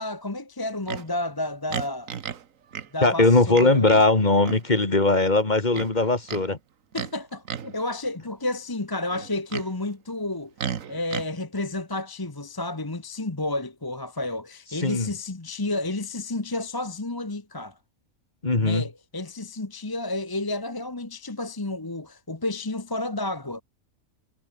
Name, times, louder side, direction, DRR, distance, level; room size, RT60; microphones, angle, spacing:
voice 1, 0.0-2.1 2.9-3.9 6.9-10.5 10.9-17.8 18.6-23.6, left 2 dB, 15° left, 1.1 m, -31 dB
Livestock farm animals working animals, 0.9-1.1 1.7-2.4 2.7-2.9 3.5-4.1 4.4-4.7 5.7-6.4 6.9-7.1 7.5-7.8 9.1-9.7 10.6-11.3, right 8 dB, 75° right, 1.6 m, -33 dB
voice 2, 3.0-6.6 14.8-15.1 18.4-18.8, left 2 dB, 35° left, 2.3 m, -20 dB
omnidirectional pair, 1.4 m